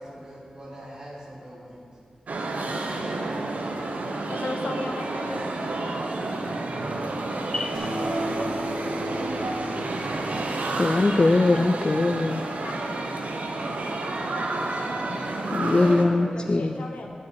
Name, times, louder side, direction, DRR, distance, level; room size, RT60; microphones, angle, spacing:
voice 1, 0.0-1.8 2.5-4.3 8.3-9.3, equal, 30° right, -4 dB, 2.5 m, -44 dB
sound 1, 2.3-16.0, right 2 dB, 80° right, 0.9 m, -30 dB
voice 2, 4.3-5.4 12.6-13.0 15.6-17.1, left 2 dB, 80° left, 2 dB, 1.1 m, -36 dB
Acoustic guitar, 7.7-11.5, left 1 dB, 10° right, 3.0 m, -36 dB
voice 3, 10.8-12.4 15.5-16.7, left 2 dB, 35° left, 6 dB, 0.3 m, -21 dB
11.5 x 4.8 x 8.0 m, 2.4 s
wide cardioid pair, 90°, 3 cm